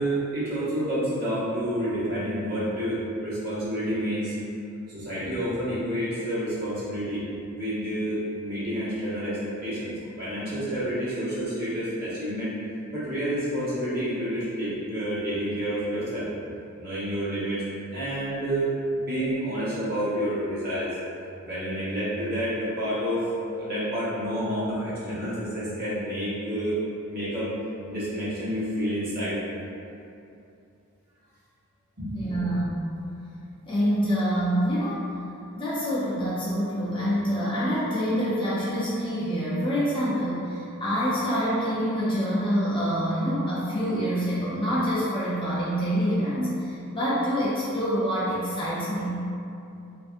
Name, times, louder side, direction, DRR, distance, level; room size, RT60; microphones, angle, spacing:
voice 1, 0.0-4.4 4.9-7.2 7.5-12.6 12.9-16.3 16.8-17.6 17.9-20.9 21.4-23.2 23.5-26.8 27.1-27.5 27.9-29.4 32.0-32.3, equal, 45° right, -11 dB, 1.1 m, -29 dB
voice 2, 32.1-32.9 33.7-35.0 35.5-49.2, equal, 20° left, -10 dB, 0.5 m, -26 dB
3.4 x 2.5 x 2.4 m, 2.6 s
head